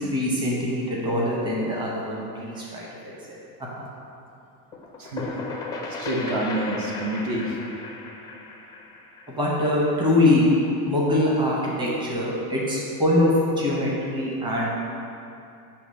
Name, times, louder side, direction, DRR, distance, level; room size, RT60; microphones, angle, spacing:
voice 1, 0.1-3.4 9.3-10.5 10.8-13.3 13.6-14.8, left 1 dB, 10° right, -5 dB, 1.0 m, -23 dB
sound 1, 4.7-10.3, left 3 dB, 10° left, 0.4 m, -35 dB
voice 2, 5.0-5.4 5.9-7.6, right 2 dB, 50° right, -1 dB, 1.1 m, -28 dB
8.3 x 2.9 x 5.4 m, 2.6 s
supercardioid pair, 140°, 45 cm